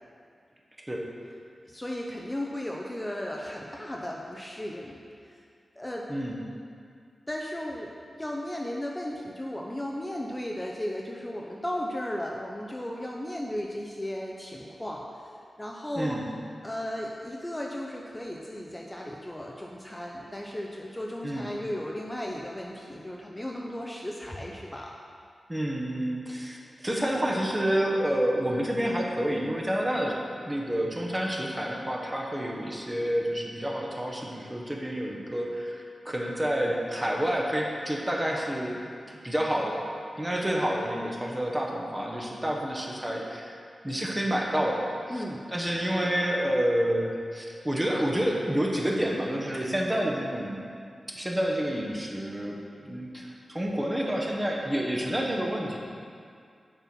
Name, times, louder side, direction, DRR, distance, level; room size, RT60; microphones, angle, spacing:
voice 1, 1.6-5.0 5.3-5.4 5.8-6.1 7.3-15.3 15.6-16.2 16.6-24.9 45.1-45.4, left 1 dB, 15° left, -1 dB, 0.6 m, -35 dB
voice 2, 15.9-16.2 21.2-21.5 25.5-38.8 39.1-39.8 40.2-43.6 43.8-45.2 45.5-50.7 51.1-55.8, equal, 15° right, -1 dB, 1.1 m, -29 dB
6.8 x 4.4 x 6.0 m, 2.3 s
cardioid pair, 65°, 0 cm